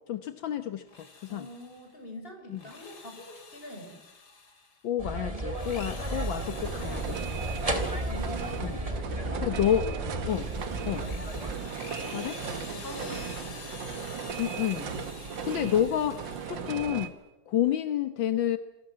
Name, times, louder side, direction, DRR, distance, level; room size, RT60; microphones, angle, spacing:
voice 1, 0.1-1.5 2.5-2.6 4.8-7.2 8.6-8.8 9.4-9.9 10.3-10.4 10.9-11.1 12.1-12.4 14.4-14.9 15.4-17.1 17.5-18.6, left 10 dB, 75° left, 10 dB, 1.8 m, -29 dB
Drill, 0.8-1.9 2.4-4.8 5.4-9.1 9.6-17.1, left 4 dB, 55° left, 3.1 m, -48 dB
voice 2, 1.3-4.0 7.7-10.5 11.9-13.6, left 1 dB, 25° left, 4 dB, 6.9 m, -45 dB
sound 1, 5.0-11.5, right 1 dB, 15° right, 4.0 m, -33 dB
sound 2, 6.4-17.1, right 6 dB, 70° right, 2.2 m, -37 dB
28.0 x 22.0 x 7.5 m, 1.1 s
omnidirectional pair, 2.1 m